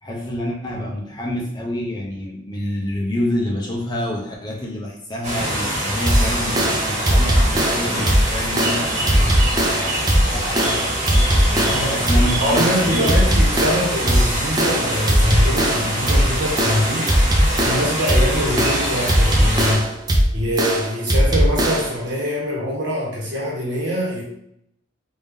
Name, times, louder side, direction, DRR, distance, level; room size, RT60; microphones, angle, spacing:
voice 1, 0.0-9.9 10.3-13.3, left 1 dB, 20° left, -1 dB, 0.6 m, -28 dB
sound 1, 5.2-19.7, right 1 dB, 40° right, 1.2 m, -24 dB
sound 2, 6.1-22.0, equal, 20° right, 0.5 m, -19 dB
voice 2, 12.4-17.1 17.6-19.8 20.3-24.2, equal, 65° right, -3 dB, 1.3 m, -23 dB
3.5 x 2.6 x 3.4 m, 0.71 s
head